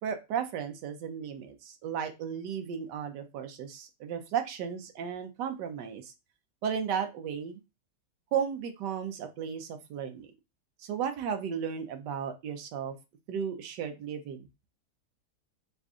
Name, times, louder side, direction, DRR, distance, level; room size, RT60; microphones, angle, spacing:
voice 1, 0.0-6.1 6.6-7.6 8.3-10.3 10.8-12.9 13.3-14.5, right 7 dB, 80° right, 7 dB, 1.3 m, -34 dB
3.8 x 2.5 x 3.5 m, 0.25 s
omnidirectional pair, 1.8 m